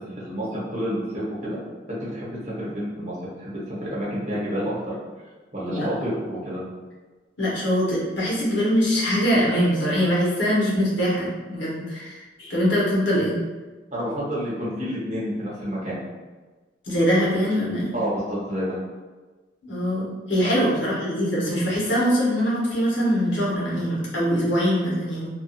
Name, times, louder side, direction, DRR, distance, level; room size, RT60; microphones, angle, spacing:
voice 1, 0.2-1.6 2.0-4.9 5.5-6.6 13.9-16.0 17.9-18.8 20.4-20.7, equal, 40° right, -8 dB, 1.0 m, -29 dB
voice 2, 7.4-13.3 16.9-18.0 19.6-25.3, equal, 70° left, -6 dB, 0.9 m, -23 dB
2.7 x 2.3 x 2.4 m, 1.3 s
head